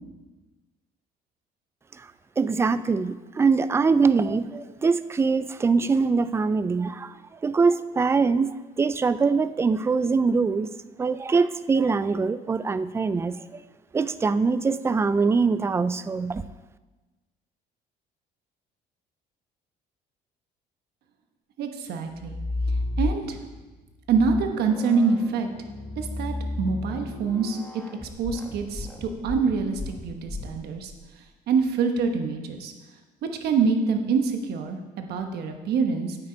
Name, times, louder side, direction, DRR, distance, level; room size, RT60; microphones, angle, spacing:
voice 1, 2.4-7.1 7.4-10.7 11.0-13.4 13.9-16.4, right 4 dB, 15° right, 15 dB, 0.3 m, -23 dB
voice 2, 21.6-22.4 23.0-23.4 24.1-25.5 26.0-30.9 31.5-32.7 33.4-36.2, right 5 dB, 70° right, 5 dB, 1.1 m, -25 dB
sound 1, 22.1-23.5 24.0-31.0, left 2 dB, 10° left, 1.1 m, -33 dB
9.0 x 8.4 x 3.9 m, 1.2 s
cardioid pair, 110°, 17 cm